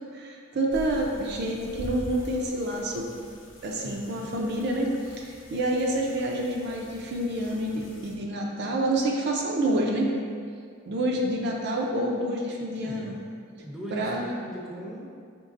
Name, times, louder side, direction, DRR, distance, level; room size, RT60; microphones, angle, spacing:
voice 1, 0.1-3.1 3.6-10.1 10.9-13.1 13.9-14.3, right 1 dB, 60° right, -1 dB, 0.5 m, -28 dB
sound 1, 0.7-8.2, equal, 75° left, 0.6 m, -44 dB
voice 2, 3.8-4.3 12.8-13.2 13.6-15.2, equal, ahead, -5 dB, 0.6 m, -39 dB
5.2 x 3.3 x 2.5 m, 2.2 s
head